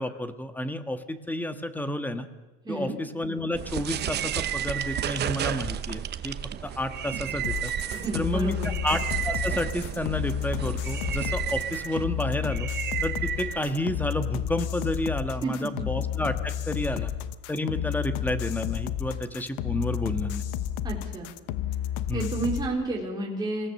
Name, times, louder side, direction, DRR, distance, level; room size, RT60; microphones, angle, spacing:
voice 1, 0.0-2.3 2.7-6.4 6.6-7.7 8.1-8.5 8.8-12.7 13.0-17.1 17.5-20.5 22.1-22.3, left 1 dB, 5° left, 9 dB, 1.4 m, -30 dB
voice 2, 2.6-3.0 7.9-8.8 15.4-15.9 20.8-21.4 22.1-23.7, right 2 dB, 15° right, -3 dB, 4.0 m, -31 dB
sound 1, 3.5-14.2, right 10 dB, 35° right, 0.9 m, -32 dB
sound 2, 7.4-22.7, left 11 dB, 90° left, 1.0 m, -31 dB
26.0 x 17.0 x 7.1 m, 1.1 s
cardioid pair, 145°, 29 cm